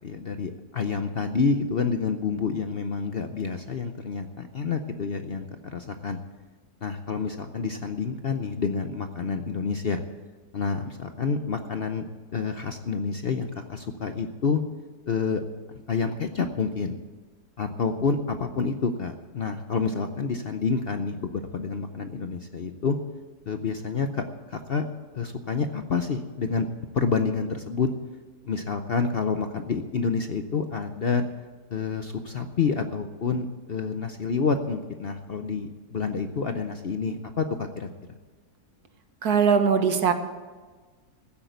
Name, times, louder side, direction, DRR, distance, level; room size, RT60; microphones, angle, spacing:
voice 1, 0.0-6.2 6.8-10.0 10.5-12.1 12.3-14.6 15.1-15.4 15.9-17.0 17.6-23.0 23.5-24.9 25.1-26.7 26.9-27.9 28.4-31.2 31.7-37.9, left 5 dB, 50° left, 7 dB, 0.7 m, -28 dB
voice 2, 39.2-40.1, right 6 dB, 75° right, 7 dB, 1.7 m, -20 dB
15.0 x 8.4 x 8.0 m, 1.4 s
omnidirectional pair, 1.7 m